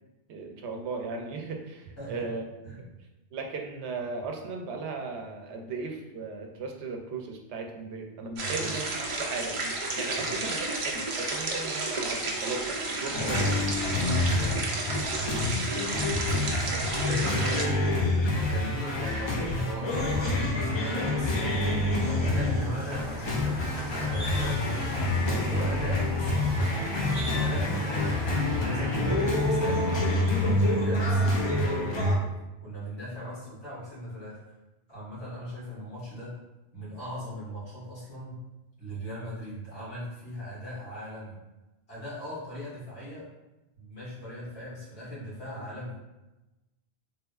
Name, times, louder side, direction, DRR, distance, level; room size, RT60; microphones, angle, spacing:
voice 1, 0.3-2.5 3.3-13.5, right 4 dB, 85° right, 2 dB, 0.9 m, -37 dB
voice 2, 8.4-8.7 10.1-10.4 13.1-15.6 16.1-16.4 17.0-17.8 18.2-21.6 22.0-26.8 27.2-29.9 30.3-32.3 32.6-34.4 34.9-36.3 36.7-38.4 38.8-41.3 41.9-43.3 43.7-45.9, equal, 70° left, -10 dB, 2.0 m, -39 dB
sound 1, 8.4-17.6, right 2 dB, 50° right, 0.4 m, -32 dB
sound 2, 13.1-32.1, left 1 dB, 45° left, 0.3 m, -27 dB
sound 3, 21.3-29.0, equal, 90° left, 1.5 m, -41 dB
3.5 x 3.0 x 2.3 m, 1.1 s
omnidirectional pair, 1.1 m